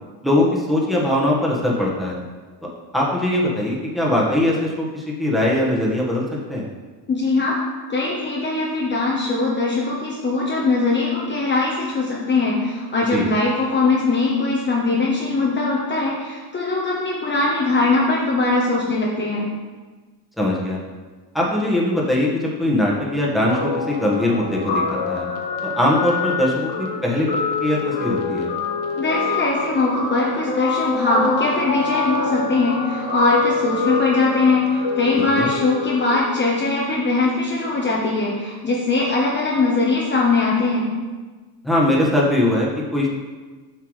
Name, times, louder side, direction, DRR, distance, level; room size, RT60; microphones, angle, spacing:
voice 1, 0.2-2.2 2.9-6.2 6.5-6.6 13.1-13.3 20.4-20.8 21.3-25.3 25.6-28.5 35.4-35.5 41.6-43.1, left 1 dB, ahead, -4 dB, 1.4 m, -21 dB
voice 2, 7.1-7.6 7.9-19.5 29.0-40.9, left 3 dB, 25° left, -4 dB, 1.0 m, -21 dB
Guitar, 23.5-36.2, left 4 dB, 60° left, 1.4 m, -25 dB
7.9 x 5.8 x 3.2 m, 1.3 s
cardioid pair, 115°, 45 cm